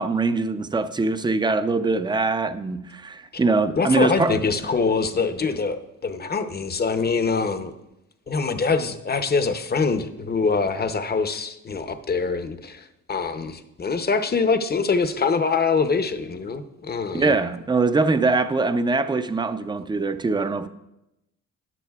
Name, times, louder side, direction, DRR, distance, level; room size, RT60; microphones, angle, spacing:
voice 1, 0.0-4.3 17.1-20.7, right 3 dB, 15° right, 10 dB, 0.5 m, -22 dB
voice 2, 3.8-7.7 8.3-17.3, left 4 dB, 30° left, 9 dB, 0.7 m, -24 dB
13.5 x 10.0 x 2.4 m, 0.90 s
cardioid pair, 105°, 33 cm